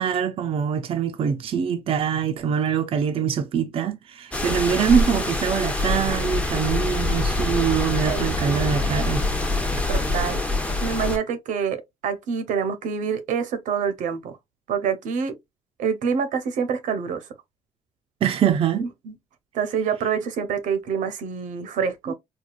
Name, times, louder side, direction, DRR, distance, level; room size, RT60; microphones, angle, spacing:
voice 1, 0.0-9.2 18.2-18.8 22.1-22.2, right 7 dB, 45° right, 0.5 m, -24 dB
sound 1, 4.3-11.2, left 2 dB, 10° left, 0.7 m, -25 dB
voice 2, 8.1-8.8 9.9-10.4 10.8-14.4 14.7-15.4 15.8-17.2 18.8-19.1 19.5-22.1, right 6 dB, 75° right, 0.8 m, -27 dB
4.7 x 2.3 x 2.3 m
cardioid pair, 125°, 13 cm